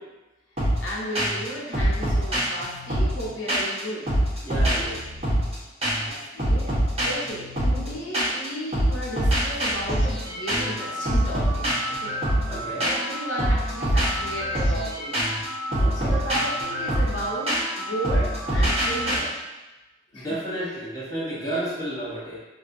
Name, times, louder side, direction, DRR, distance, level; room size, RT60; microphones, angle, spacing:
sound 1, 0.6-0.9 1.1-1.5 1.7-3.8 4.1-5.5 5.8-6.1 6.4-8.5 8.7-19.2, right 1 dB, 35° right, 1.1 m, -25 dB
voice 1, 0.8-4.1 6.0-6.7 7.0-11.7 12.0-12.2 12.8-15.1 15.9-19.3 20.1-20.8 21.3-21.7, equal, 80° left, -5 dB, 0.9 m, -34 dB
voice 2, 4.4-5.0 12.5-12.9 15.8-16.2 20.1-22.4, right 1 dB, 20° left, -7 dB, 0.8 m, -31 dB
3.3 x 2.7 x 2.5 m, 1.1 s
head